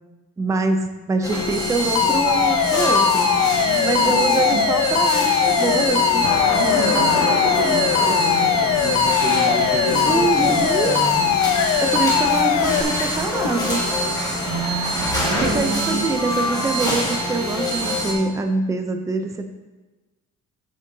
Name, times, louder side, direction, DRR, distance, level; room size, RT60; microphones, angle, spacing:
voice 1, 0.4-3.3 3.8-6.3 6.7-7.8 10.0-10.9 11.8-13.8 15.4-19.5, right 3 dB, 10° right, 6 dB, 0.4 m, -25 dB
sound 1, 1.2-18.1, right 1 dB, 10° left, 1.6 m, -24 dB
Alarm, 2.0-12.8, left 10 dB, 90° left, 0.6 m, -20 dB
voice 2, 3.6-4.7 6.6-11.3 14.5-16.1, right 4 dB, 25° right, 4 dB, 0.8 m, -29 dB
sound 2, 6.2-14.9, left 4 dB, 55° left, 1.2 m, -30 dB
9.5 x 6.5 x 2.7 m, 1.2 s
cardioid pair, 155°, 31 cm